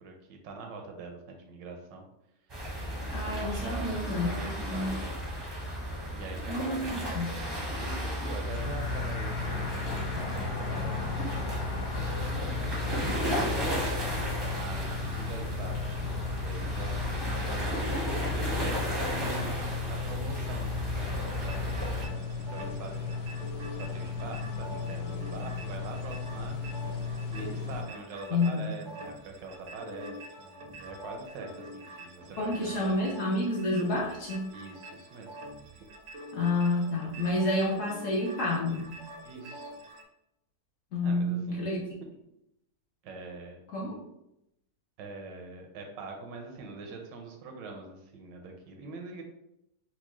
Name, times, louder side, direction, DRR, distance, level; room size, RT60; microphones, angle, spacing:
voice 1, 0.0-2.1 2.5-2.6 3.0-5.2 6.1-12.1 13.2-14.0 14.3-16.0 16.3-23.2 23.6-26.6 27.3-33.1 34.5-35.3 35.8-35.9 39.2-39.7 41.0-41.8 43.0-44.0 45.0-49.2, right 3 dB, 85° right, 3 dB, 1.4 m, -44 dB
sound 1, 2.5-22.1, equal, 30° right, 0.5 m, -34 dB
voice 2, 3.1-5.0 6.5-7.4 28.3-28.7 32.4-34.5 36.3-39.0 40.9-41.9 43.7-44.0, left 2 dB, 60° left, -3 dB, 0.8 m, -29 dB
sound 2, 8.5-27.8, left 5 dB, 80° left, 1.3 m, -35 dB
sound 3, 21.2-40.0, right 1 dB, 70° right, 0.7 m, -46 dB
4.5 x 2.1 x 3.0 m, 0.83 s
omnidirectional pair, 1.9 m